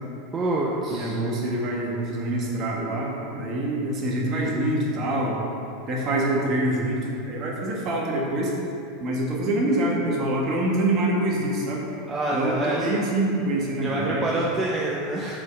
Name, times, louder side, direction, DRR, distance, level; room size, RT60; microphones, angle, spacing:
voice 1, 0.3-1.2 12.1-12.9 13.8-15.4, right 2 dB, 25° right, -3 dB, 0.9 m, -26 dB
voice 2, 0.9-5.4 5.9-8.5 9.0-11.9 12.3-14.5, right 1 dB, 45° right, -2 dB, 1.7 m, -25 dB
6.2 x 4.9 x 6.1 m, 2.6 s
hypercardioid pair, 105°, 0 cm